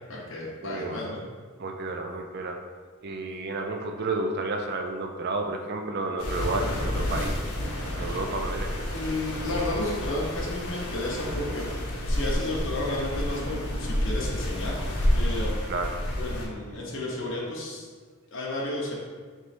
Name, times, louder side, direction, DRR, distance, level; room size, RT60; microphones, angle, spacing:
voice 1, 0.1-1.2 8.9-11.7 12.1-14.8 15.1-15.6 16.2-17.9 18.3-19.0, left 1 dB, 55° left, -4 dB, 0.7 m, -32 dB
voice 2, 0.6-1.0 1.6-2.6 3.0-7.3 8.0-8.7 15.7-15.9, right 2 dB, 45° right, 3 dB, 0.4 m, -31 dB
sound 1, 6.2-16.5, left 1 dB, 90° left, 0.9 m, -29 dB
3.3 x 3.2 x 4.0 m, 1.5 s
head